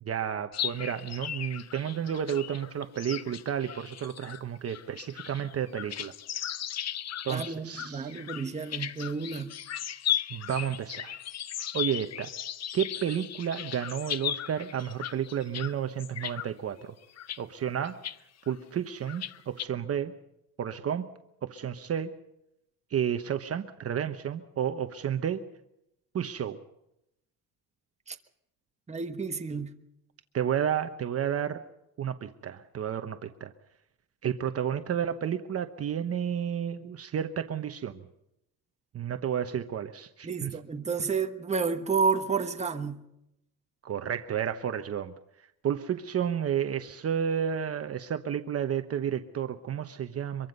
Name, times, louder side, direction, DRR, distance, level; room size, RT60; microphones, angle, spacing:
voice 1, 0.1-6.1 7.2-8.1 10.3-11.2 11.7-12.3 12.7-16.9 17.4-17.9 18.5-20.1 20.6-21.1 21.4-22.1 22.9-25.4 26.1-26.6 30.3-31.6 32.0-33.5 34.2-38.0 38.9-40.5 43.8-45.1 45.6-50.5, right 9 dB, 40° right, 1.0 m, -31 dB
sound 1, 0.5-15.7 16.0-16.5 17.0-17.4 17.8-18.2 18.5-18.6 19.1-19.6, left 10 dB, 45° left, 0.7 m, -36 dB
voice 2, 7.3-9.5 28.1-28.2 28.9-29.7 40.2-43.0, right 5 dB, 20° right, 1.3 m, -30 dB
24.5 x 23.5 x 5.4 m
cardioid pair, 145°, 37 cm